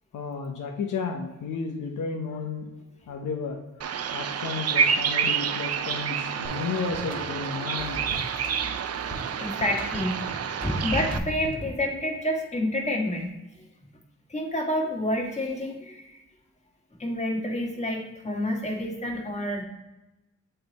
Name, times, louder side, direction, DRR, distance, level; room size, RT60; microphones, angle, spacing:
voice 1, 0.1-2.6 3.1-3.6 4.1-8.0, left 5 dB, 75° left, 2 dB, 0.8 m, -32 dB
Bird vocalization bird call bird song, 3.8-11.2, right 7 dB, 55° right, 0.5 m, -28 dB
sound 1, 6.4-11.8, right 1 dB, 5° right, 1.9 m, -41 dB
voice 2, 9.4-13.3 14.3-16.2 17.0-19.6, left 1 dB, 20° left, -1 dB, 1.5 m, -28 dB
7.8 x 3.3 x 4.0 m, 1.0 s
cardioid pair, 80°, 31 cm